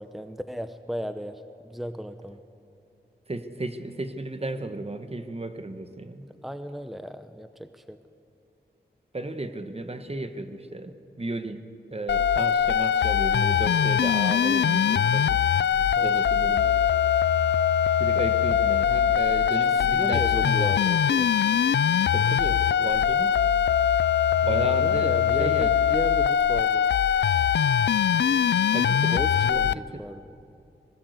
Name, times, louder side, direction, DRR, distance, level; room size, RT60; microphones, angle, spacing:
voice 1, 0.0-2.4 6.4-8.0 15.8-16.3 19.8-21.3 24.4-26.9 29.1-30.3, equal, ahead, 10 dB, 0.8 m, -35 dB
voice 2, 3.3-6.3 9.1-11.7 11.9-15.4 16.0-16.8 18.0-20.7 22.1-23.3 24.4-25.1 25.4-25.7 28.7-29.1 29.4-30.0, right 2 dB, 35° right, 9 dB, 1.3 m, -34 dB
sound 1, 12.1-29.7, left 8 dB, 75° left, 0.4 m, -22 dB
21.0 x 18.5 x 8.1 m, 2.7 s
wide cardioid pair, 60°, 18 cm